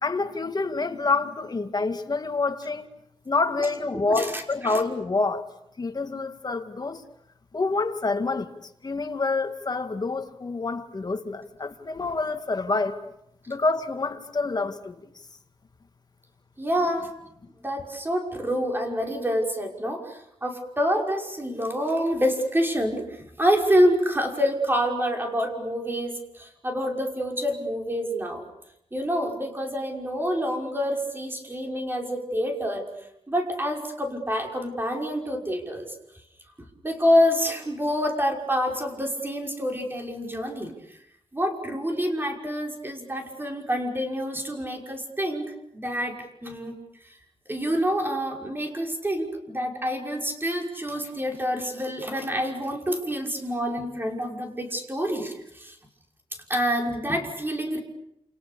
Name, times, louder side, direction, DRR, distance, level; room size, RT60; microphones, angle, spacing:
voice 1, 0.0-2.9 3.3-5.5 5.8-7.0 7.5-8.5 8.8-13.0 13.5-15.1, left 3 dB, 35° left, 2.1 m, -27 dB
voice 2, 3.9-4.8 16.6-17.1 17.6-28.4 28.9-32.9 33.3-35.9 36.8-41.0 41.3-46.8 47.5-55.8 56.5-57.8, equal, 20° right, 5.7 m, -27 dB
29.0 x 29.0 x 6.9 m
wide cardioid pair, 100°, 12 cm